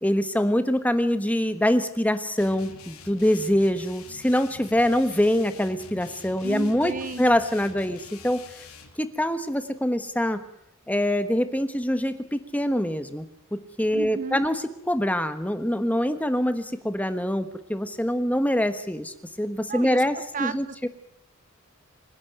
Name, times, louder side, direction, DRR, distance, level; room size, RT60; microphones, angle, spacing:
voice 1, 0.0-6.9 7.2-8.4 9.0-10.4 10.9-13.2 13.5-14.5 14.9-20.1 20.4-20.9, equal, 5° left, 9 dB, 1.3 m, -24 dB
sound 1, 2.4-9.0, left 5 dB, 90° left, 3.0 m, -46 dB
voice 2, 6.4-7.4 13.9-14.4 19.7-20.9, right 4 dB, 40° right, 13 dB, 0.9 m, -34 dB
27.0 x 10.5 x 9.2 m, 0.76 s
head